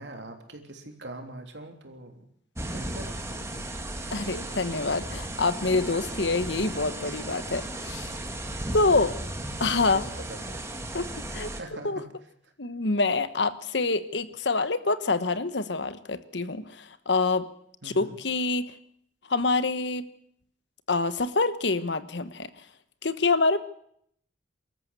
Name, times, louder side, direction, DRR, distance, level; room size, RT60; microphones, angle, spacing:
voice 1, 0.0-2.1 2.7-3.7 9.0-9.1 9.6-10.6 11.6-12.1 17.8-18.2, right 1 dB, 70° right, 4 dB, 3.3 m, -42 dB
sound 1, 2.6-11.6, right 1 dB, 15° right, 2.0 m, -35 dB
voice 2, 4.1-8.1 8.7-9.1 9.6-10.0 10.9-12.0 12.6-17.5 17.8-18.7 19.3-20.1 20.9-22.5 23.0-23.6, left 3 dB, 70° left, 13 dB, 1.2 m, -26 dB
24.5 x 14.0 x 8.2 m, 0.69 s
head